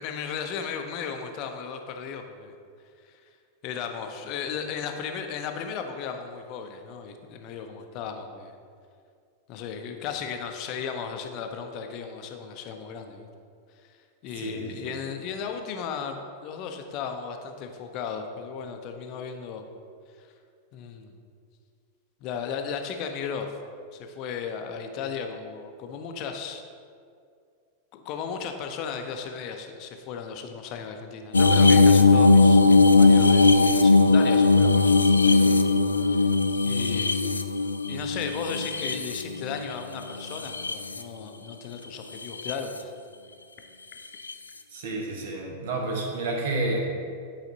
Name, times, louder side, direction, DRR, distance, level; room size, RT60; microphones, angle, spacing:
voice 1, 0.0-2.5 3.0-3.2 3.6-8.5 9.5-13.3 14.2-19.7 20.2-20.3 20.7-21.1 22.2-23.5 23.9-26.6 27.9-35.8 36.0-36.3 36.6-37.2 37.9-42.9, left 6 dB, 40° left, 5 dB, 0.7 m, -35 dB
voice 2, 14.4-14.9 44.7-46.9, right 2 dB, 55° right, 0 dB, 1.2 m, -30 dB
sound 1, 31.3-39.7 40.2-41.0 42.2-42.5 44.3-44.4, left 3 dB, 80° left, 0.3 m, -19 dB
10.5 x 5.0 x 2.8 m, 2.2 s
figure-of-eight pair, 90°, 0 cm